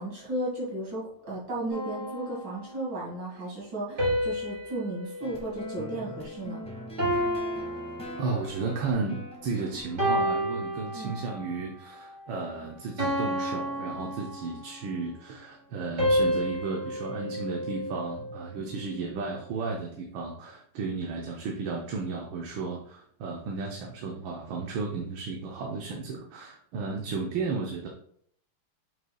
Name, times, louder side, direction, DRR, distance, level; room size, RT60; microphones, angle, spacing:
voice 1, 0.0-6.6 10.9-11.2, right 1 dB, 55° right, -5 dB, 2.9 m, -35 dB
sound 1, 1.7-3.0 4.0-6.5 7.0-8.7 9.3-9.5 10.0-11.5 12.0-12.3 13.0-14.9 16.0-18.4, equal, 30° right, 2.9 m, -31 dB
sound 2, 5.2-10.3, equal, 5° left, 0.9 m, -43 dB
voice 2, 8.2-27.9, right 4 dB, 70° right, 0 dB, 1.5 m, -34 dB
7.6 x 5.5 x 2.3 m, 0.66 s
omnidirectional pair, 2.4 m